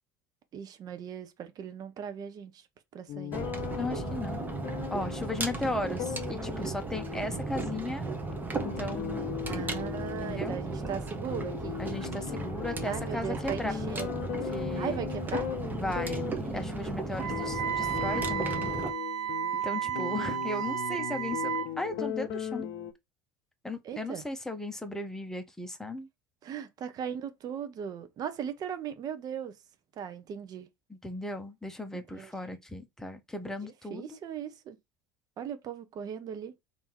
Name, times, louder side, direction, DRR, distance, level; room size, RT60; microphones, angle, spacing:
voice 1, 0.5-2.6 2.9-3.4 9.4-11.8 12.9-14.3 14.8-15.5 19.7-20.4 23.8-24.2 26.4-29.5 30.0-30.7 31.9-32.6 33.9-34.8 35.4-36.5, right 8 dB, 45° right, 0.9 m, -38 dB
sound 1, 3.1-22.9, left 10 dB, 55° left, 0.8 m, -38 dB
sound 2, 3.3-18.9, right 3 dB, 20° right, 1.2 m, -36 dB
voice 2, 3.8-4.4 4.9-8.0 8.6-9.3 10.2-10.6 11.8-13.7 14.5-15.1 15.7-18.7 19.6-22.7 23.6-26.1 30.9-34.2, left 1 dB, 5° left, 1.1 m, -36 dB
Wind instrument woodwind instrument, 17.2-21.7, right 10 dB, 75° right, 0.6 m, -33 dB
3.5 x 2.9 x 4.5 m
hypercardioid pair, 70°, 9 cm